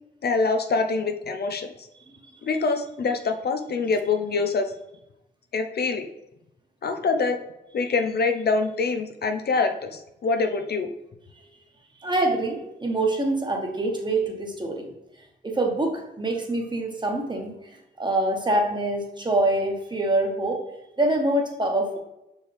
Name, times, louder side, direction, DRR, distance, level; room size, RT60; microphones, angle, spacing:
voice 1, 0.2-1.7 2.4-4.7 5.5-6.1 6.8-7.4 7.7-10.9, left 4 dB, 65° left, 6 dB, 0.6 m, -25 dB
voice 2, 12.0-14.9 15.4-17.5 18.0-20.6 21.0-22.0, right 2 dB, 25° right, 2 dB, 1.2 m, -25 dB
6.1 x 4.5 x 3.4 m, 0.89 s
cardioid pair, 90°, 18 cm